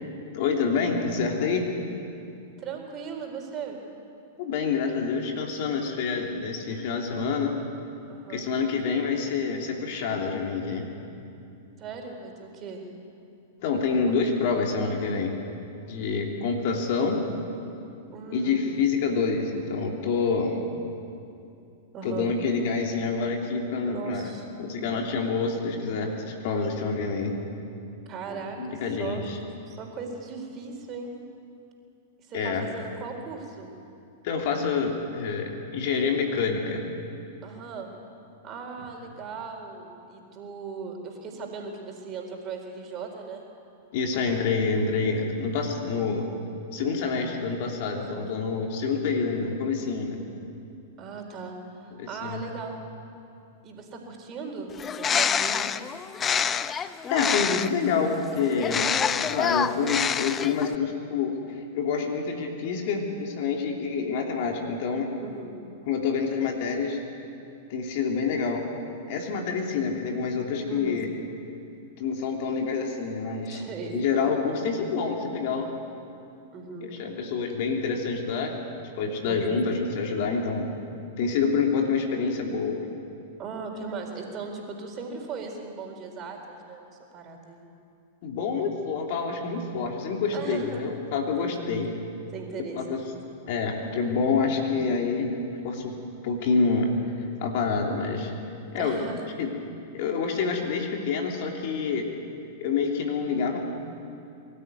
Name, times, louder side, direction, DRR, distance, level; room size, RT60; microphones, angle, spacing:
voice 1, 0.3-1.7 4.4-7.5 8.3-10.9 13.6-15.3 15.9-17.2 18.3-20.6 22.0-24.3 24.6-27.3 28.3-29.4 32.3-32.7 34.2-36.8 43.9-46.3 46.7-50.2 51.9-52.4 57.1-58.9 59.2-65.1 65.9-67.0 67.7-68.6 69.1-71.1 72.0-73.6 73.9-75.7 76.8-78.5 79.0-80.7 81.2-82.8 88.2-91.9 92.7-93.0 93.5-95.3 95.6-95.9 96.2-96.9 97.2-98.3 98.7-99.0 99.4-99.5 99.9-102.1 102.6-103.6, left 5 dB, 55° left, 1 dB, 3.0 m, -27 dB
voice 2, 2.6-3.8 8.1-8.5 11.8-12.9 18.1-18.6 21.9-22.3 23.8-24.5 28.1-29.2 29.7-31.1 32.3-33.7 37.4-37.9 38.4-43.4 48.0-48.3 51.0-52.9 53.6-55.6 65.2-65.6 70.7-71.0 73.5-74.0 76.5-76.9 79.3-79.6 83.4-87.7 90.3-90.8 91.4-91.7 92.3-93.1 98.7-99.2, right 5 dB, 35° right, 2 dB, 4.2 m, -38 dB
Bird, 54.7-57.9 58.6-60.8, left 7 dB, 25° left, 0.6 m, -26 dB
23.0 x 13.0 x 9.4 m, 2.6 s
hypercardioid pair, 100°, 0 cm